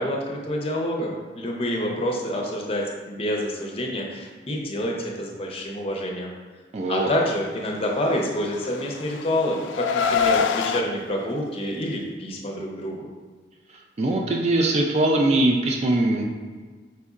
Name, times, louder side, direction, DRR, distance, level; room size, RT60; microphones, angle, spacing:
voice 1, 0.0-6.3 6.9-13.1, left 1 dB, 30° left, 0 dB, 0.6 m, -27 dB
voice 2, 6.7-7.1 14.0-16.2, right 2 dB, 35° right, 1 dB, 0.3 m, -21 dB
Car, 8.3-10.8, left 6 dB, 90° left, 0.3 m, -25 dB
4.4 x 4.0 x 2.4 m, 1.5 s
head